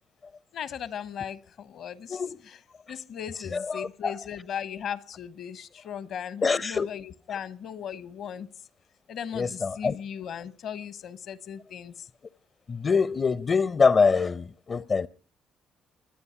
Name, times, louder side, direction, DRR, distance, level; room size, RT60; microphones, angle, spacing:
voice 1, 0.5-2.6 2.9-8.5 9.1-12.1, left 8 dB, 65° left, 1.1 m, -37 dB
voice 2, 3.5-4.1 6.4-6.9 9.3-9.9 12.7-15.1, left 5 dB, 45° left, 0.7 m, -24 dB
25.0 x 9.7 x 5.8 m
hypercardioid pair, 55°, 0 cm